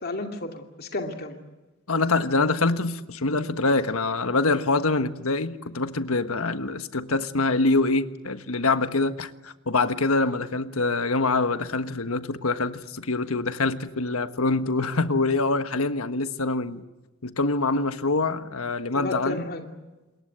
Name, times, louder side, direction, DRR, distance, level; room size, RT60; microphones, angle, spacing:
voice 1, 0.0-1.4 18.9-19.7, left 2 dB, 50° left, 3 dB, 2.6 m, -32 dB
voice 2, 1.9-16.8 17.2-19.4, left 3 dB, 85° left, 10 dB, 1.4 m, -25 dB
27.5 x 21.5 x 8.0 m, 1.1 s
head